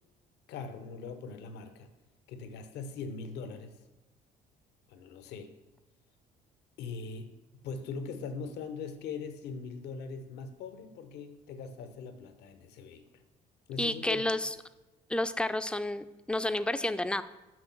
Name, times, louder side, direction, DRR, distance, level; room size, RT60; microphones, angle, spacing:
voice 1, 0.5-1.9 2.3-3.8 4.9-5.5 6.8-7.3 7.6-13.2 13.7-14.3, left 5 dB, 80° left, 9 dB, 0.9 m, -41 dB
voice 2, 13.8-14.5 15.1-17.2, left 1 dB, 5° left, 11 dB, 0.4 m, -30 dB
6.3 x 6.1 x 5.9 m, 1.1 s
cardioid pair, 110°, 17 cm